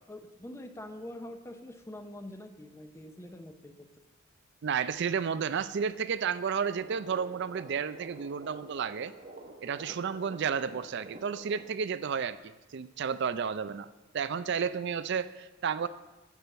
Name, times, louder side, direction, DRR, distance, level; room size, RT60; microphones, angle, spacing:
voice 1, 0.1-3.9, left 1 dB, 15° left, 6 dB, 0.7 m, -45 dB
voice 2, 4.6-9.1 9.6-13.9 14.1-15.9, right 6 dB, 55° right, 14 dB, 0.4 m, -32 dB
sound 1, 6.6-11.7, right 2 dB, 35° right, 1.0 m, -49 dB
8.2 x 6.2 x 7.0 m, 1.1 s
head